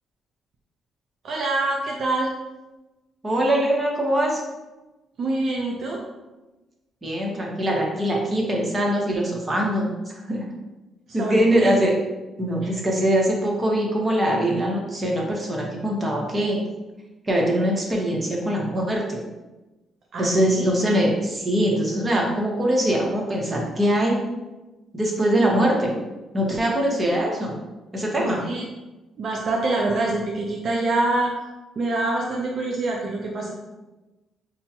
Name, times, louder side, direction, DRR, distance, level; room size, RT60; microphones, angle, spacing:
voice 1, 1.2-2.3 5.2-6.0 11.2-11.7 12.6-12.7 20.1-20.7 28.2-28.6 29.2-31.3 31.8-33.5, right 2 dB, 60° right, -1 dB, 0.5 m, -25 dB
voice 2, 3.2-4.4 7.0-10.4 11.1-11.9 12.4-16.6 17.2-19.2 20.2-24.2 24.9-25.9 26.3-27.5 27.9-28.4, right 1 dB, 25° right, -2 dB, 1.0 m, -22 dB
5.3 x 2.2 x 2.9 m, 1.1 s
cardioid pair, 90°, 0 cm